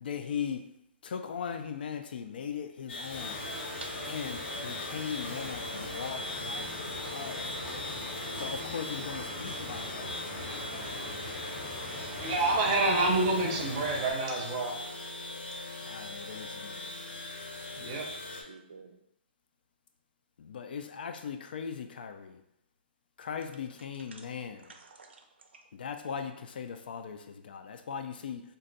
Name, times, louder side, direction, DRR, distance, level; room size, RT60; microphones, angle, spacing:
voice 1, 0.0-0.7 1.0-3.5 4.1-6.7 7.1-7.5 8.3-10.2 15.9-17.2 20.4-22.4 23.2-24.7 25.7-28.4, left 7 dB, 60° left, 0.4 m, -39 dB
sound 1, 2.9-18.4, left 2 dB, 75° left, 0.8 m, -40 dB
sound 2, 3.1-14.1, equal, 15° left, 0.8 m, -41 dB
voice 2, 12.2-14.7 17.8-18.1, right 2 dB, 25° right, 0.6 m, -28 dB
voice 3, 18.2-19.0 24.1-24.3 24.6-25.6, right 4 dB, 85° right, 0.6 m, -50 dB
2.5 x 2.2 x 3.9 m
hypercardioid pair, 165°, 6 cm